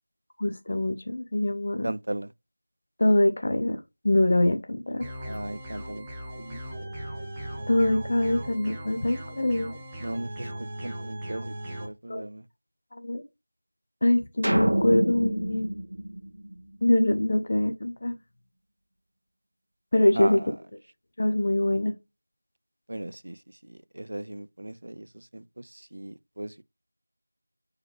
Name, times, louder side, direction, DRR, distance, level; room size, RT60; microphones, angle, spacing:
voice 1, 0.4-1.9 3.0-3.8 4.0-5.1 7.7-9.7 12.1-12.2 12.9-13.2 14.0-15.7 16.8-18.1 19.9-20.4 21.2-21.9, left 1 dB, 35° left, 0.8 m, -24 dB
voice 2, 1.8-2.3 5.3-6.1 6.4-6.6 10.0-10.5 10.8-11.5 11.8-12.4 20.1-20.5 22.9-26.6, right 1 dB, 55° right, 0.4 m, -36 dB
sound 1, 5.0-11.8, right 1 dB, 5° right, 0.8 m, -38 dB
sound 2, 14.4-16.9, right 1 dB, 75° right, 1.3 m, -27 dB
6.9 x 4.8 x 3.3 m
figure-of-eight pair, 175°, 0 cm